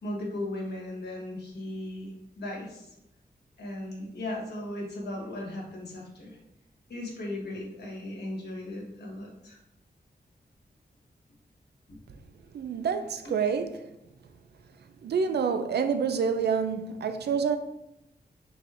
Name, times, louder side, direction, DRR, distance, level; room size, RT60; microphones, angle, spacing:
voice 1, 0.0-2.9 3.6-6.4 6.9-9.6 11.9-12.0 13.2-13.3, left 1 dB, 75° left, 1.2 m, -37 dB
voice 2, 12.5-13.9 15.0-17.6, right 6 dB, 75° right, 0.4 m, -27 dB
4.3 x 3.9 x 2.5 m
wide cardioid pair, 155°, 17 cm